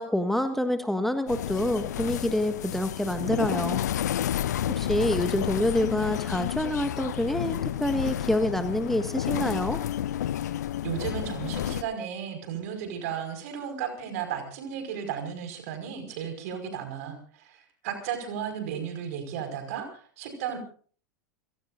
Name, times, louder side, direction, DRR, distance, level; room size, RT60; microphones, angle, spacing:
voice 1, 0.0-3.8 4.7-9.8, left 1 dB, ahead, 8 dB, 1.5 m, -27 dB
sound 1, 1.3-11.8, left 11 dB, 65° left, 0.6 m, -31 dB
voice 2, 10.8-20.6, right 8 dB, 55° right, 7 dB, 5.3 m, -34 dB
30.0 x 17.0 x 2.6 m, 0.43 s
figure-of-eight pair, 85°, 10 cm